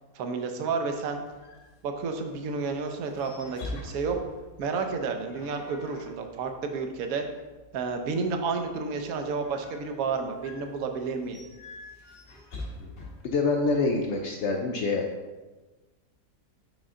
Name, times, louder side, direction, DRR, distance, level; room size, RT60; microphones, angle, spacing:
voice 1, 0.1-1.2 1.8-4.2 4.6-7.2 7.7-11.4, right 4 dB, 65° right, 5 dB, 1.0 m, -31 dB
sound 1, 1.1-14.2, left 2 dB, 50° left, 1.7 m, -46 dB
voice 2, 13.2-15.1, left 3 dB, 80° left, 2 dB, 0.6 m, -26 dB
5.4 x 5.1 x 3.6 m, 1.2 s
omnidirectional pair, 1.8 m